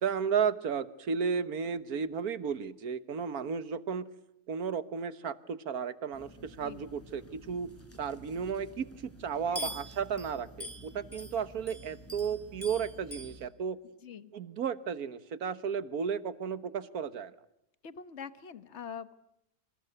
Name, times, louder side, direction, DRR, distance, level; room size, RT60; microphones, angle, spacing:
voice 1, 0.0-4.1 4.5-7.7 8.0-13.8 14.3-17.3, right 6 dB, 65° right, 13 dB, 1.7 m, -33 dB
sound 1, 6.1-13.5, equal, 10° left, 4.3 m, -46 dB
voice 2, 9.4-9.8 14.0-14.3 17.8-19.2, left 7 dB, 45° left, 12 dB, 1.5 m, -44 dB
27.5 x 26.0 x 8.0 m, 0.80 s
omnidirectional pair, 1.7 m